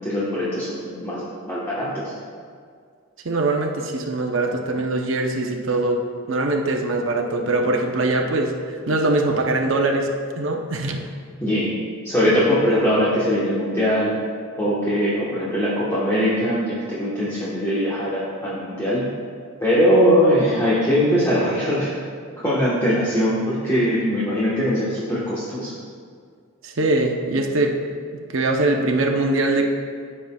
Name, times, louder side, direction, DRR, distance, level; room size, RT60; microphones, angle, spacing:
voice 1, 0.0-2.0 11.4-11.7 12.0-14.1 14.6-19.0 19.6-21.9 22.4-25.7, equal, 15° left, -9 dB, 1.2 m, -21 dB
voice 2, 3.2-6.0 6.3-10.1 10.4-11.0 26.6-27.7 28.1-29.7, right 2 dB, 65° right, 2 dB, 0.7 m, -22 dB
14.0 x 5.6 x 2.3 m, 2.1 s
head